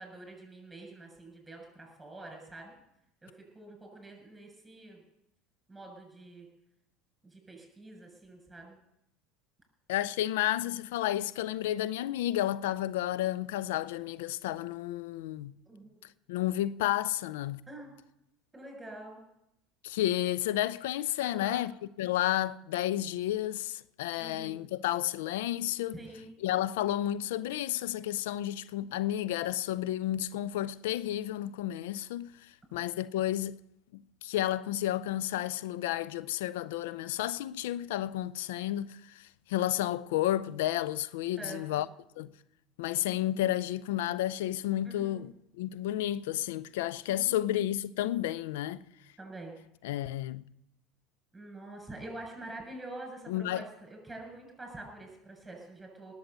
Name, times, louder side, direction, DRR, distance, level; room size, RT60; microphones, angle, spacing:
voice 1, 0.0-2.7 3.2-5.0 5.7-6.5 7.2-8.8 15.7-16.0 17.7-18.0 18.5-19.2 21.2-21.7 24.2-24.7 25.9-26.3 39.8-39.9 41.4-41.6 44.8-45.2 47.1-47.5 49.2-49.6 51.3-56.1, right 2 dB, 10° right, 7.1 m, -46 dB
voice 2, 9.9-15.6 16.3-17.6 19.8-26.0 26.4-33.5 33.9-41.9 42.2-42.3 42.8-48.8 49.8-50.4 53.3-53.6, left 13 dB, 70° left, 0.4 m, -31 dB
19.0 x 7.9 x 6.9 m
hypercardioid pair, 75°, 0 cm